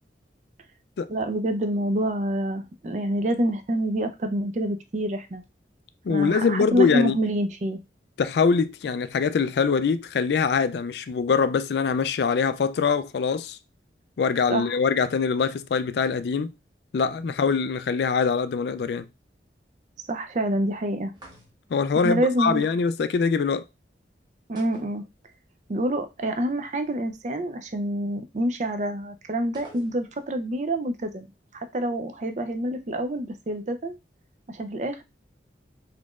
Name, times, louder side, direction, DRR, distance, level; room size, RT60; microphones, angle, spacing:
voice 1, 1.1-5.4 6.1-7.8 14.5-14.7 20.1-21.1 21.9-22.6 24.5-25.0 25.7-31.3 31.5-33.9 34.5-35.0, right 1 dB, 40° right, 0.4 m, -27 dB
voice 2, 6.0-7.2 8.2-13.6 14.2-16.5 16.9-19.1 21.7-23.6, left 5 dB, 70° left, 0.3 m, -23 dB
sound 1, 21.1-21.9 24.6-25.6 25.9-26.0 29.5-30.3, right 2 dB, 25° right, 0.9 m, -48 dB
4.1 x 3.0 x 2.4 m
head